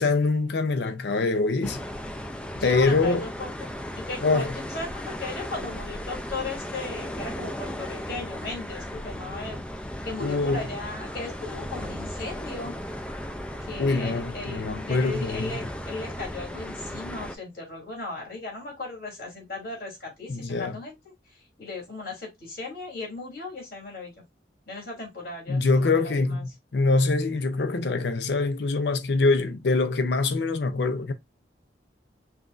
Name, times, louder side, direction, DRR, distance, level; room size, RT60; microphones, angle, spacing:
voice 1, 0.0-1.8 2.6-3.3 4.2-4.5 10.2-10.6 13.8-15.6 20.3-20.8 25.5-31.1, left 3 dB, 70° left, 0.6 m, -24 dB
sound 1, 1.6-17.4, equal, 5° left, 0.3 m, -36 dB
voice 2, 2.5-9.6 10.0-12.8 13.6-14.6 14.9-20.9 21.3-24.1 24.6-26.4, left 3 dB, 55° left, 2.8 m, -37 dB
5.7 x 2.4 x 2.5 m
head